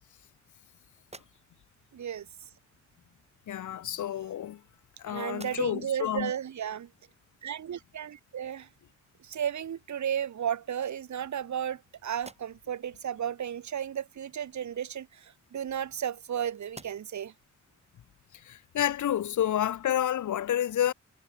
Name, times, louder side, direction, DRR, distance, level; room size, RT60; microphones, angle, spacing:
sound 1, 1.0-1.8 3.0-3.1 4.1-4.9 5.3-6.0 6.5-6.6 9.3-9.4 9.8-10.5 11.1-11.8 12.1-12.8 14.8-16.3 16.7-17.3, right 2 dB, 20° right, 6.7 m, -54 dB
voice 1, 1.9-2.3 5.1-6.9 7.4-8.7 9.2-17.3, right 9 dB, 70° right, 0.8 m, -34 dB
voice 2, 3.5-4.6 5.0-6.3 18.4-20.9, left 11 dB, 90° left, 0.6 m, -29 dB
wide cardioid pair, 155°, 29 cm